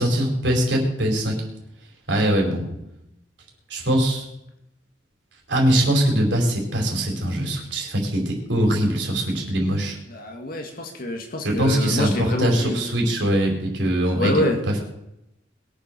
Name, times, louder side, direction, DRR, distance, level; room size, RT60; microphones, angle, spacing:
voice 1, 0.0-1.4 2.1-2.8 3.7-4.3 5.5-10.0 11.4-14.7, right 1 dB, 80° right, 1 dB, 4.7 m, -22 dB
voice 2, 10.1-12.9 14.1-14.6, left 1 dB, 55° left, 3 dB, 2.0 m, -26 dB
21.5 x 7.4 x 6.9 m, 0.83 s
head